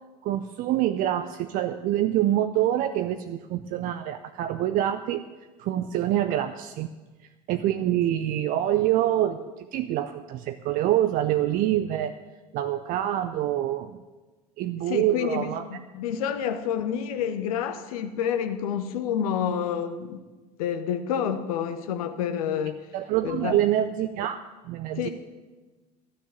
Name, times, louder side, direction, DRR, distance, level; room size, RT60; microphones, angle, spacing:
voice 1, 0.2-5.2 5.6-6.9 7.5-9.4 9.7-12.2 12.5-14.0 14.6-15.6 22.9-25.1, right 12 dB, 45° right, 10 dB, 0.6 m, -26 dB
voice 2, 14.9-20.2 20.6-22.8 23.2-23.6 25.0-25.1, left 8 dB, 60° left, 9 dB, 1.0 m, -28 dB
12.5 x 6.6 x 9.3 m, 1.2 s
figure-of-eight pair, 70°, 20 cm